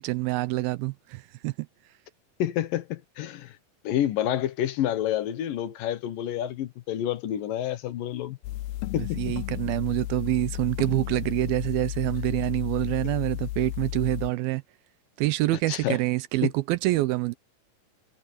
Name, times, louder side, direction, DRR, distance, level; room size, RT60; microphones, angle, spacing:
voice 1, 0.0-1.7 9.0-14.6 15.2-17.3, right 19 dB, 80° right, 2.5 m, -26 dB
voice 2, 2.4-3.5 3.8-8.4 8.9-9.2 15.7-16.0 16.4-16.5, left 11 dB, 70° left, 2.7 m, -28 dB
sound 1, 8.4-14.3, left 15 dB, 90° left, 2.6 m, -33 dB
omnidirectional pair, 4.3 m